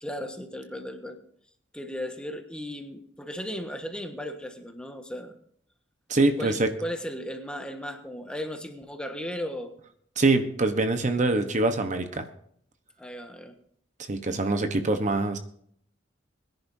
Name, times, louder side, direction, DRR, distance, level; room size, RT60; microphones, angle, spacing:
voice 1, 0.0-1.2 1.7-5.3 6.4-9.7 13.0-13.6, equal, 5° left, 5 dB, 1.3 m, -36 dB
voice 2, 6.1-6.7 10.2-12.2 14.1-15.4, right 2 dB, 40° right, 7 dB, 1.0 m, -24 dB
22.0 x 10.5 x 2.7 m, 0.63 s
head